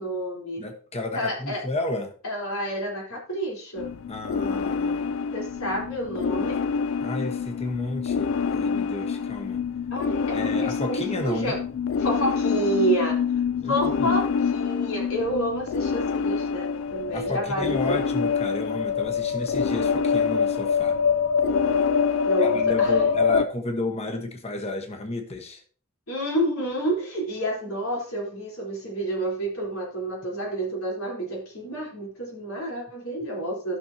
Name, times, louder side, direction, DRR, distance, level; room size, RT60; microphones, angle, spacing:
voice 1, 0.0-0.6 1.1-1.6 2.2-3.9 5.3-6.6 9.9-11.6 12.0-13.2 13.6-18.0 22.2-23.2 26.1-33.8, right 1 dB, 85° left, 3.8 m, -29 dB
voice 2, 0.6-2.1 4.1-5.1 7.0-9.6 10.3-11.6 13.6-14.1 17.1-21.0 22.4-25.6, left 2 dB, 30° left, 1.1 m, -32 dB
sound 1, 3.8-23.4, left 6 dB, 70° left, 0.3 m, -25 dB
14.5 x 6.1 x 2.8 m
head